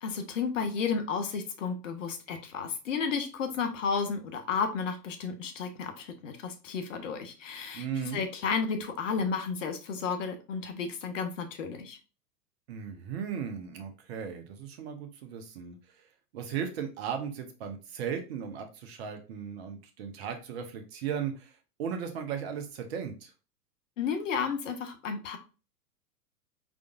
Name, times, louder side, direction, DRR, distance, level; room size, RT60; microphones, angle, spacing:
voice 1, 0.0-7.9 8.1-12.0 24.0-25.4, left 5 dB, 55° left, 7 dB, 1.0 m, -32 dB
voice 2, 7.7-8.2 12.7-16.1 16.3-23.3, right 7 dB, 40° right, 5 dB, 0.9 m, -36 dB
4.9 x 3.7 x 2.4 m, 0.33 s
figure-of-eight pair, 100°, 47 cm